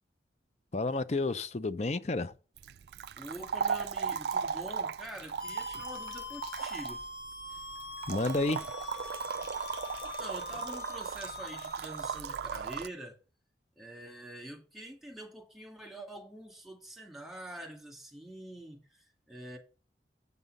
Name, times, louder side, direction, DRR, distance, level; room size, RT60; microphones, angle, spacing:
voice 1, 0.7-2.3 8.1-8.7, left 2 dB, 40° left, 0.5 m, -30 dB
sound 1, 2.6-12.9, right 6 dB, 65° right, 0.4 m, -37 dB
voice 2, 3.2-7.0 10.0-13.2 13.8-19.6, right 1 dB, ahead, 1.9 m, -45 dB
sound 2, 5.4-12.2, left 3 dB, 60° left, 1.2 m, -43 dB
8.3 x 5.5 x 6.4 m
head